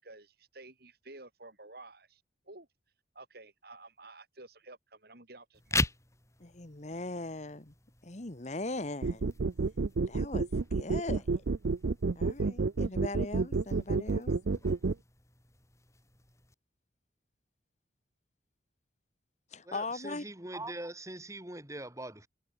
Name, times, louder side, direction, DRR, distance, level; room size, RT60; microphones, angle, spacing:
voice 1, 0.0-2.7 3.1-5.9, right 2 dB, 55° right, 7.5 m, -52 dB
sound 1, 5.5-16.5, left 3 dB, 15° left, 4.6 m, -41 dB
voice 2, 6.4-7.7 8.0-9.3 10.1-11.4 12.1-14.3 19.5-20.3, left 2 dB, 40° left, 1.5 m, -39 dB
sound 2, 9.0-14.9, right 4 dB, 70° right, 0.6 m, -29 dB
voice 3, 19.6-22.3, right 1 dB, 15° right, 4.0 m, -42 dB
head